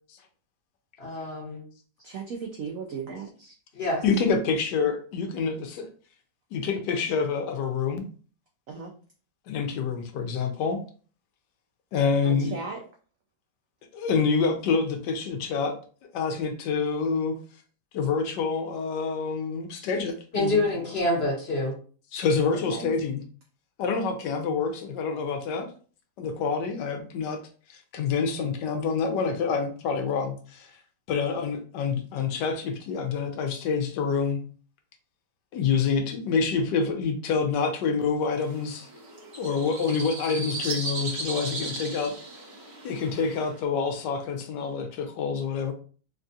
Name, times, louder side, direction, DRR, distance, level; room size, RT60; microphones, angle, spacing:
voice 1, 1.0-1.6 3.7-4.0 20.3-21.7, left 2 dB, 40° left, -2 dB, 1.2 m, -26 dB
voice 2, 2.0-3.5 8.7-8.9 12.2-12.8 22.5-22.9, right 5 dB, 80° right, 1 dB, 0.7 m, -36 dB
voice 3, 4.0-5.8 6.5-8.1 9.5-10.8 11.9-12.5 13.9-15.7 16.1-17.4 17.9-20.6 22.1-23.2 23.8-25.7 26.2-27.4 27.7-30.7 31.1-34.4 35.5-38.9 39.4-42.1 42.8-45.7, left 5 dB, 80° left, 5 dB, 1.2 m, -27 dB
sound 1, 38.4-43.6, right 3 dB, 45° right, 0.9 m, -36 dB
3.5 x 2.3 x 2.6 m, 0.40 s
omnidirectional pair, 1.9 m